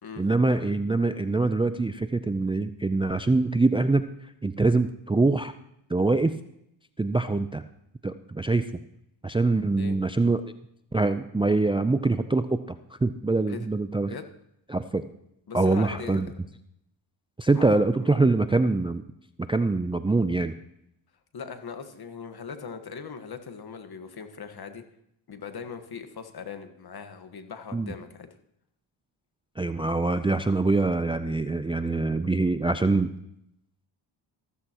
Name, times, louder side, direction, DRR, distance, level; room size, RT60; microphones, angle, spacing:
voice 1, 0.2-4.1 4.4-5.5 5.9-6.4 7.0-7.6 8.0-8.7 9.2-10.4 10.9-14.1 14.7-15.0 15.5-16.3 17.4-19.0 19.4-20.5 27.7-27.9 29.6-33.1, right 3 dB, 10° right, 10 dB, 0.5 m, -24 dB
voice 2, 15.5-16.3 17.5-17.7 18.0-18.1 21.3-24.8 25.3-28.3, left 6 dB, 50° left, 7 dB, 1.5 m, -40 dB
15.0 x 14.0 x 3.0 m, 0.77 s
cardioid pair, 75°, 49 cm